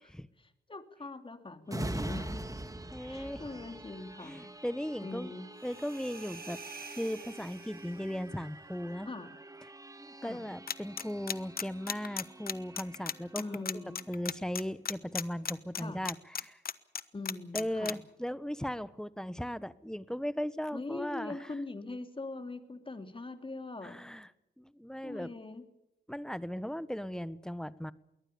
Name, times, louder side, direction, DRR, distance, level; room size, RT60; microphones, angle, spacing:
voice 1, 0.4-2.4 3.0-4.5 5.0-5.5 9.1-9.3 10.2-10.4 13.3-14.1 15.7-16.0 17.1-18.0 20.7-24.0 25.0-25.7, left 2 dB, 30° left, 8 dB, 3.0 m, -42 dB
sound 1, 1.7-15.0 15.4-15.6, right 1 dB, 20° right, 2.9 m, -45 dB
voice 2, 2.9-3.5 4.2-5.3 5.6-6.6 6.9-9.1 10.0-13.7 14.1-16.6 17.5-21.5 23.8-24.3 24.6-25.3 26.1-27.9, equal, 5° left, 16 dB, 1.2 m, -37 dB
sound 2, 5.6-8.3, right 4 dB, 55° right, 5.3 m, -49 dB
sound 3, 10.7-17.9, left 7 dB, 55° left, 1.2 m, -34 dB
22.5 x 18.5 x 7.0 m, 0.87 s
cardioid pair, 65°, 18 cm